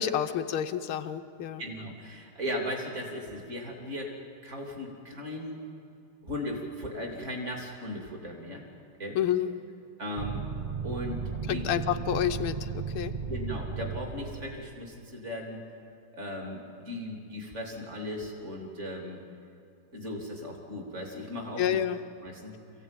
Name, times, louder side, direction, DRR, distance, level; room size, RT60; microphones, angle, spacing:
voice 1, 0.0-1.6 9.2-9.5 11.5-13.1 21.6-22.0, left 10 dB, 85° left, 7 dB, 1.7 m, -29 dB
voice 2, 1.6-4.1 4.4-5.6 6.2-8.6 9.0-9.2 10.0-10.4 10.8-11.7 13.3-15.6 16.1-19.2 19.9-21.8 22.2-22.5, left 1 dB, 35° right, 0 dB, 3.3 m, -37 dB
sound 1, 10.2-14.7, right 6 dB, 50° right, 0.5 m, -35 dB
25.5 x 16.0 x 9.1 m, 2.5 s
omnidirectional pair, 2.3 m